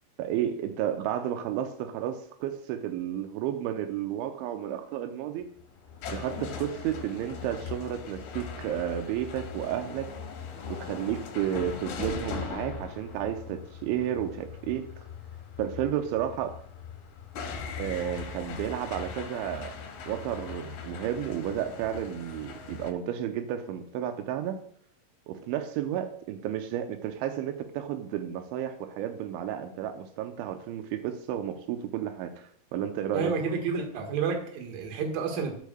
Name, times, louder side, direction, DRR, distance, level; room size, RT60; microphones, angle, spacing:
voice 1, 0.2-5.5 6.1-10.1 10.7-14.9 15.6-16.6 17.8-19.7 20.1-24.6 25.3-32.3 32.7-33.3, right 10 dB, 85° right, 6 dB, 3.1 m, -32 dB
sound 1, 5.4-22.9, left 6 dB, 65° left, 3.0 m, -40 dB
voice 2, 33.1-35.6, right 5 dB, 60° right, 3 dB, 2.9 m, -30 dB
13.0 x 8.4 x 2.3 m, 0.64 s
omnidirectional pair, 5.2 m